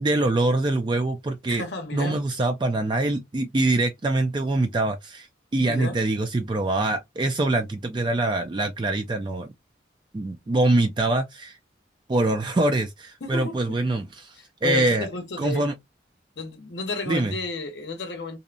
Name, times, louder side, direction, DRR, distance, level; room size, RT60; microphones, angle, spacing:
voice 1, 0.0-1.6 1.9-5.3 5.5-9.5 10.1-11.6 12.1-15.1 15.4-15.7 17.1-17.3, right 2 dB, 25° right, 0.3 m, -24 dB
voice 2, 1.5-2.2 5.6-6.0 13.2-13.8 14.4-15.6 16.4-18.4, left 3 dB, 70° left, 0.7 m, -32 dB
2.7 x 2.1 x 2.5 m
head